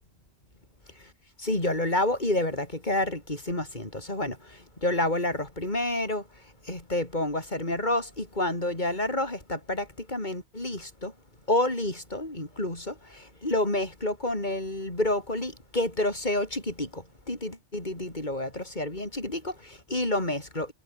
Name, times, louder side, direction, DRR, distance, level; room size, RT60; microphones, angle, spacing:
voice 1, 1.4-6.2 6.7-11.1 11.5-20.7, left 1 dB, 40° left, 5.0 m, -29 dB
omnidirectional pair, 1.2 m